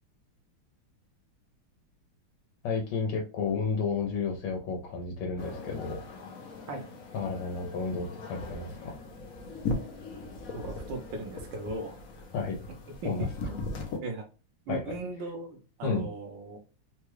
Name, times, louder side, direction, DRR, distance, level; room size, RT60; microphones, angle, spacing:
voice 1, 2.6-6.0 7.1-8.9 12.3-12.6 13.0-13.3 14.7-14.8 15.8-16.1, left 5 dB, 85° left, 0 dB, 1.6 m, -32 dB
sound 1, 5.4-14.0, left 3 dB, 60° left, 0.9 m, -39 dB
voice 2, 10.5-12.0 13.0-13.6 14.0-14.2 14.7-16.6, right 2 dB, 70° right, 4 dB, 1.2 m, -38 dB
3.8 x 2.2 x 3.0 m, 0.33 s
omnidirectional pair, 2.3 m